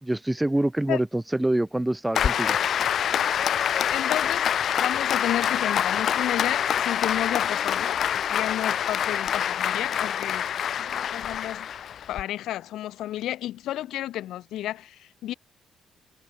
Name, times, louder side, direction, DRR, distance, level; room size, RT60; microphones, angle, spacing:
voice 1, 0.0-2.6, right 1 dB, 5° right, 0.4 m, -25 dB
Applause, 2.1-12.2, left 9 dB, 50° left, 0.5 m, -26 dB
voice 2, 3.7-4.5 4.8-11.7 12.1-15.3, left 13 dB, 80° left, 1.5 m, -32 dB
cardioid pair, 175°, 0 cm